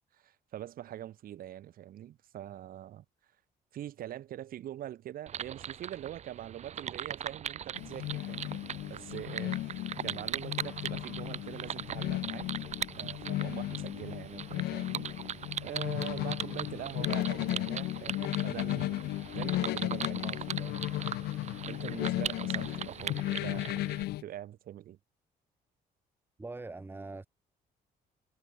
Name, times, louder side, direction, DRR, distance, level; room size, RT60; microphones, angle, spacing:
voice 1, 0.1-3.1 3.7-8.6 8.9-12.5 13.0-15.1 15.6-19.1 19.3-23.9 24.2-25.0, right 12 dB, 65° right, 7.0 m, -44 dB
sound 1, 5.3-24.0, right 9 dB, 45° right, 1.9 m, -40 dB
sound 2, 7.7-24.2, left 16 dB, 90° left, 1.5 m, -35 dB
voice 2, 26.4-27.3, right 3 dB, 15° right, 1.8 m, -42 dB
cardioid pair, 150°, 16 cm